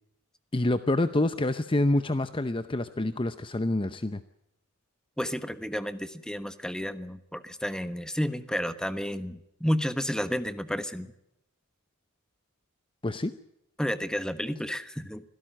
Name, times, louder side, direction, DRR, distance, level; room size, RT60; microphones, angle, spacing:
voice 1, 0.5-4.2 13.0-13.3, left 1 dB, 25° left, 11 dB, 0.7 m, -27 dB
voice 2, 5.2-11.1 13.8-15.2, equal, 5° left, 11 dB, 1.2 m, -31 dB
25.5 x 16.5 x 7.6 m, 0.81 s
head